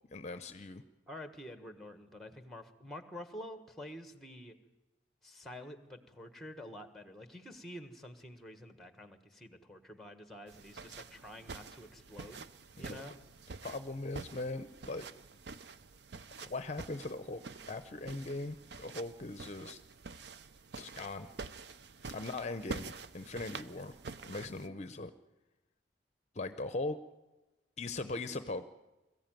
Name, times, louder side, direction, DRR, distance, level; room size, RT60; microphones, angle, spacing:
voice 1, 0.1-0.8 12.8-13.0 13.6-15.1 16.4-19.8 20.8-21.3 22.1-23.9 24.2-25.1 26.3-27.0 27.8-28.6, left 2 dB, 40° left, 11 dB, 0.7 m, -40 dB
voice 2, 1.1-4.6 5.2-12.4 12.8-13.1, left 1 dB, ahead, 9 dB, 1.4 m, -48 dB
sound 1, 10.5-24.7, right 4 dB, 65° right, 0.6 m, -48 dB
22.5 x 14.5 x 9.1 m, 1.1 s
head